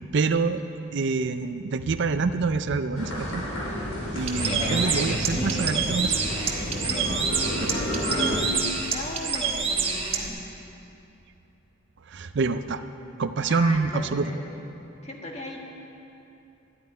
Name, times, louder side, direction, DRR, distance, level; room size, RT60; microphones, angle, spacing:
voice 1, 0.1-0.6 0.9-3.4 4.1-6.1 7.5-7.7 12.1-12.8 13.2-14.3, right 4 dB, 55° right, 10 dB, 0.5 m, -26 dB
sound 1, 2.9-8.4, equal, 85° left, 4.3 m, -31 dB
voice 2, 4.0-5.7 6.8-10.4 13.5-14.7 15.0-15.6, left 1 dB, 30° left, 0 dB, 1.7 m, -37 dB
Bird, 4.2-10.3, right 5 dB, 30° right, 1.2 m, -28 dB
12.0 x 9.3 x 9.8 m, 2.8 s
head